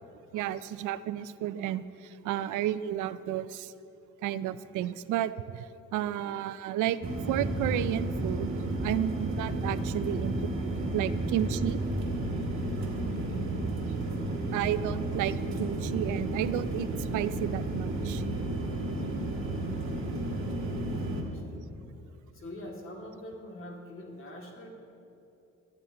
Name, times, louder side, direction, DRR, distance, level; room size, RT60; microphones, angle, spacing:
voice 1, 0.3-3.7 4.2-5.7 5.9-7.0 7.3-10.4 10.9-11.8 14.5-18.2, right 12 dB, 85° right, 15 dB, 0.5 m, -32 dB
sound 1, 7.0-21.2, right 2 dB, 45° right, 2.2 m, -32 dB
voice 2, 12.9-13.3 19.8-21.6 22.3-24.7, left 1 dB, 45° left, 0 dB, 2.3 m, -46 dB
19.0 x 11.5 x 2.9 m, 2.9 s
cardioid pair, 95°, 30 cm